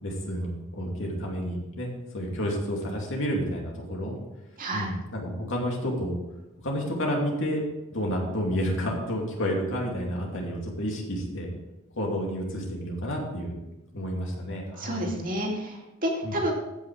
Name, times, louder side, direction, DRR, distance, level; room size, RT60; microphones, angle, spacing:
voice 1, 0.0-4.2 4.7-6.1 6.6-7.6 7.9-11.5 12.0-13.5 13.9-15.1 16.2-16.3, equal, 60° left, -1 dB, 2.6 m, -30 dB
voice 2, 4.6-4.9 14.8-16.5, right 1 dB, 40° right, -1 dB, 2.4 m, -30 dB
15.0 x 6.0 x 4.8 m, 1.0 s
head